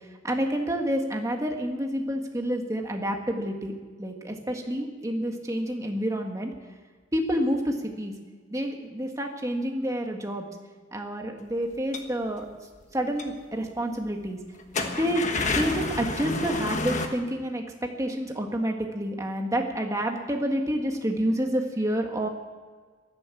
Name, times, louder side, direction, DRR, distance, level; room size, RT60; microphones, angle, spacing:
voice 1, 0.2-6.5 7.1-8.1 8.5-10.4 10.9-12.5 12.9-14.4 15.0-15.2 15.5-17.6 18.0-22.3, equal, 15° right, 2 dB, 1.7 m, -28 dB
sound 1, 11.7-12.1 12.8-12.9 13.2-13.3 13.7-13.8 14.6-17.1, left 3 dB, 35° left, 1.3 m, -29 dB
14.0 x 11.5 x 8.4 m, 1.5 s
head